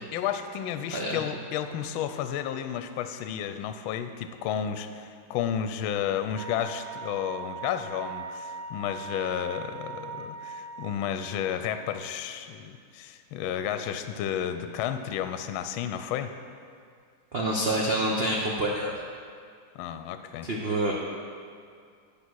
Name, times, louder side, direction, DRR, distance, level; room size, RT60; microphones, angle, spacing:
voice 1, 0.1-16.3 19.7-20.5, left 9 dB, 75° left, 9 dB, 1.3 m, -32 dB
Wind instrument woodwind instrument, 6.3-11.2, right 5 dB, 45° right, 0.8 m, -40 dB
voice 2, 17.3-18.9 20.4-20.9, right 1 dB, 85° right, -2 dB, 0.5 m, -27 dB
10.5 x 5.7 x 6.2 m, 2.2 s
omnidirectional pair, 2.3 m